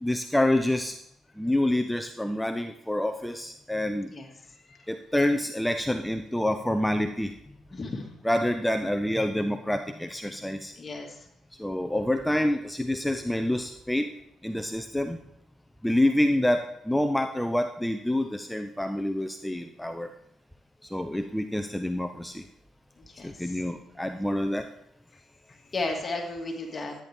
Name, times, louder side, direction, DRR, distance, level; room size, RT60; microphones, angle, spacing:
voice 1, 0.0-0.9 1.4-4.1 4.9-7.3 8.2-10.7 11.6-14.1 14.4-15.2 15.8-20.1 20.9-22.4 23.2-24.7, left 1 dB, 5° left, 6 dB, 0.8 m, -27 dB
voice 2, 7.7-8.1 10.8-11.2 23.0-23.5 25.5-27.0, left 2 dB, 35° left, 1 dB, 2.5 m, -34 dB
13.5 x 10.0 x 3.7 m, 0.78 s
supercardioid pair, 65°, 0 cm